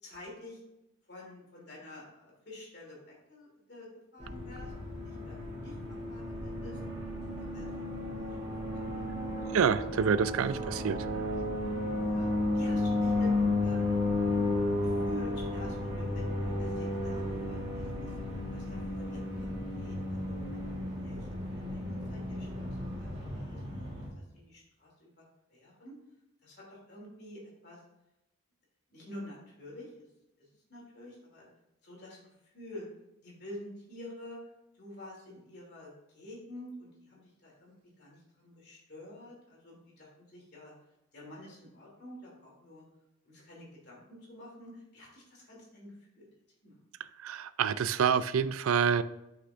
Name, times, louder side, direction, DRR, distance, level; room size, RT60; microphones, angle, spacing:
voice 1, 0.0-0.6 1.1-6.8 7.4-7.7 8.1-8.3 8.8-9.3 12.0-12.3 12.5-13.3 13.6-13.9 14.8-18.1 18.5-19.5 19.7-21.4 21.7-23.9 24.3-25.9 26.4-27.8 28.9-29.9 30.7-31.5 31.8-32.2 32.5-32.9 33.2-34.4 34.8-40.1 40.3-40.7 41.1-42.8 43.2-44.0 44.3-46.3 46.6-46.7, left 1 dB, 50° left, -4 dB, 2.9 m, -49 dB
sound 1, 4.2-24.1, left 2 dB, 25° right, 2.8 m, -33 dB
voice 2, 9.5-11.1 47.2-49.0, right 7 dB, 85° right, 15 dB, 0.4 m, -27 dB
11.5 x 5.7 x 2.5 m, 0.91 s
head